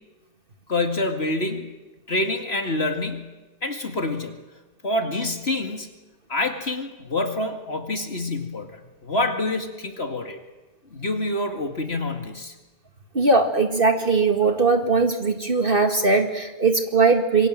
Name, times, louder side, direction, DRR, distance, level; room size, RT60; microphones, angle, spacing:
voice 1, 0.7-1.7 2.1-3.3 3.6-4.4 4.8-5.9 6.3-10.4 10.9-12.5, left 2 dB, 40° left, 5 dB, 2.4 m, -27 dB
voice 2, 13.1-17.5, right 3 dB, 35° right, 6 dB, 2.0 m, -20 dB
27.0 x 23.5 x 7.6 m, 1.1 s
omnidirectional pair, 1.8 m